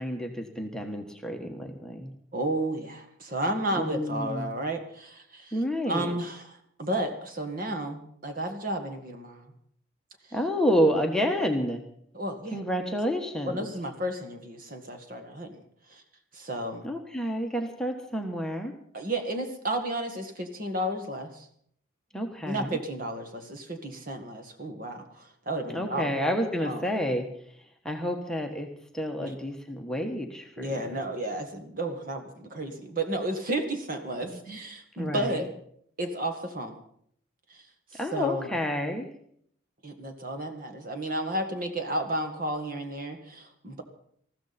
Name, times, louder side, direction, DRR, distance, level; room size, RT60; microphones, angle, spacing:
voice 1, 0.0-2.1 3.8-4.5 5.5-6.1 10.3-11.8 12.5-13.7 16.8-18.7 22.1-22.8 25.7-27.2 27.8-28.7 28.9-31.0 34.2-34.6 35.0-35.5 38.0-39.1, equal, 5° left, 2 dB, 1.3 m, -29 dB
voice 2, 2.3-5.6 5.9-9.5 12.1-12.6 13.5-15.6 15.9-16.0 16.3-16.8 18.9-21.5 22.4-26.1 26.6-26.8 29.2-29.4 30.6-35.5 36.0-36.8 37.5-37.7 37.9-38.5 39.8-43.8, right 1 dB, 45° right, 5 dB, 1.9 m, -32 dB
20.0 x 14.5 x 4.3 m, 0.66 s
head